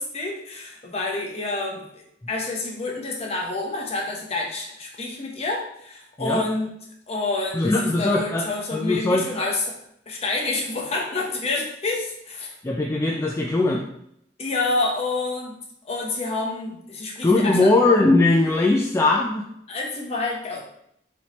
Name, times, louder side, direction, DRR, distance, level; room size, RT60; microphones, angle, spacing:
voice 1, 0.0-6.7 7.1-9.8 10.1-12.5 14.4-15.6 15.8-17.7 19.7-20.6, left 3 dB, 35° left, -1 dB, 0.8 m, -28 dB
voice 2, 7.5-8.4 8.7-9.5 12.6-13.8 17.2-19.4, left 2 dB, 15° left, -1 dB, 0.3 m, -20 dB
4.2 x 3.3 x 3.0 m, 0.73 s
head